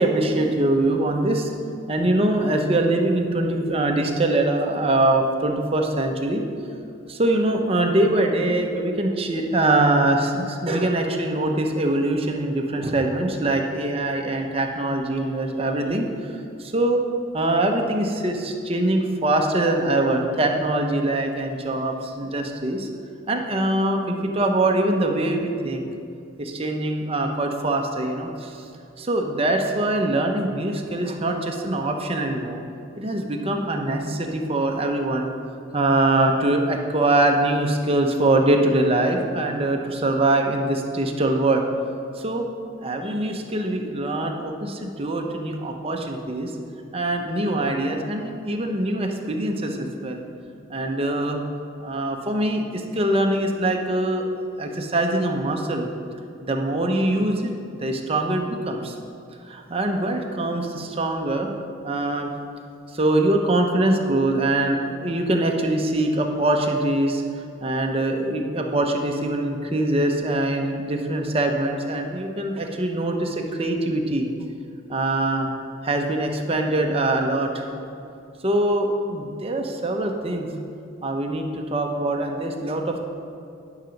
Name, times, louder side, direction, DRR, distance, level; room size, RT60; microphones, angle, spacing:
voice 1, 0.0-1.5 1.9-6.4 7.1-16.1 16.6-17.0 17.3-22.9 23.3-25.8 26.4-28.6 29.0-32.6 33.0-35.3 35.7-41.6 42.2-42.5 42.8-46.5 46.9-50.2 50.7-51.4 51.8-54.3 54.6-55.9 56.4-58.9 59.5-61.5 61.8-62.3 62.9-67.2 67.6-74.3 74.9-75.5 75.8-77.8 78.4-80.5 81.0-83.0, right 1 dB, 30° right, 3 dB, 0.8 m, -23 dB
11.0 x 5.8 x 5.2 m, 2.5 s
head